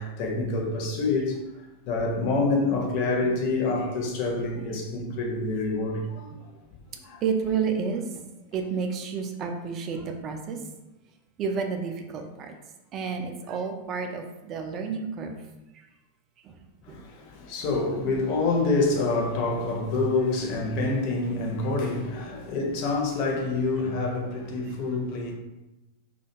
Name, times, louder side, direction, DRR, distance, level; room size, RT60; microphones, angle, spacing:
voice 1, 0.0-1.4 1.9-6.5 6.9-7.2 16.8-25.3, left 3 dB, 45° left, 0.5 m, -27 dB
voice 2, 7.2-8.3 8.5-10.6 11.4-12.5 12.9-15.4 15.7-15.9 16.4-16.6 16.9-17.0, right 5 dB, 35° right, 0.3 m, -30 dB
2.4 x 2.1 x 2.8 m
figure-of-eight pair, 90°, 0 cm